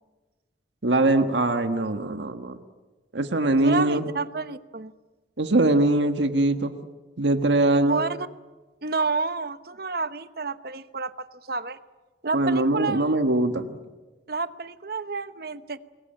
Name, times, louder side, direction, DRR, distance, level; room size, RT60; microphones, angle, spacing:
voice 1, 0.8-2.6 3.1-4.1 5.4-6.8 7.2-8.0 12.3-13.8, right 2 dB, 85° right, 7 dB, 1.5 m, -22 dB
voice 2, 3.6-4.9 7.7-8.3 8.8-11.8 12.2-13.2 14.3-15.8, right 4 dB, 60° right, 12 dB, 1.0 m, -30 dB
28.0 x 22.0 x 9.0 m, 1.3 s
head